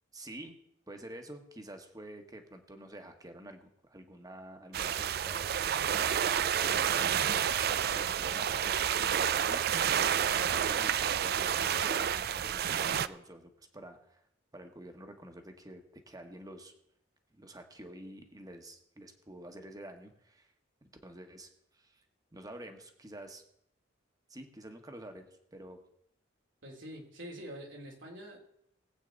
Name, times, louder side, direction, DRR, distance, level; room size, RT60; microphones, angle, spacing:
voice 1, 0.1-0.6 0.9-5.5 5.9-9.7 10.1-14.2 14.5-16.7 17.3-20.5 21.0-22.0 22.3-23.4 24.3-25.8, right 1 dB, 20° right, 5 dB, 1.4 m, -48 dB
sound 1, 4.7-13.1, right 9 dB, 55° right, 0.4 m, -29 dB
voice 2, 26.6-28.4, equal, 85° right, 0 dB, 3.1 m, -45 dB
20.5 x 8.4 x 4.0 m, 0.73 s
head